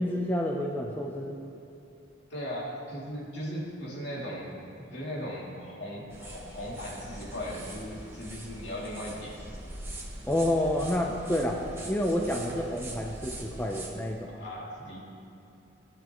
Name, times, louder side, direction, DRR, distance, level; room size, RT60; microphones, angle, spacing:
voice 1, 0.0-1.4 10.2-14.3, left 1 dB, 10° left, 0 dB, 0.6 m, -29 dB
voice 2, 2.3-4.6 4.9-9.6 14.3-15.0, equal, 65° left, -4 dB, 2.8 m, -38 dB
sound 1, 6.1-13.9, right 1 dB, 15° right, 1.3 m, -42 dB
18.0 x 9.9 x 3.1 m, 2.8 s
head